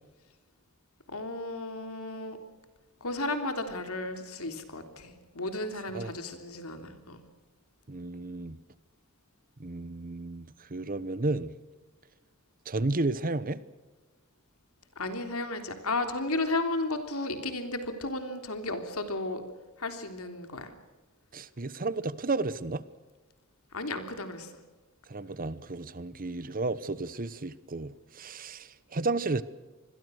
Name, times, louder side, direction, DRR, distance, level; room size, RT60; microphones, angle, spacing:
voice 1, 1.1-2.4 3.0-7.2 15.0-19.4 19.8-20.7 23.7-24.5, left 2 dB, 80° left, 3.4 m, -34 dB
voice 2, 7.9-8.6 9.6-11.5 12.7-13.6 21.3-22.8 25.1-29.4, right 3 dB, 40° right, 1.0 m, -32 dB
27.0 x 21.5 x 6.5 m
head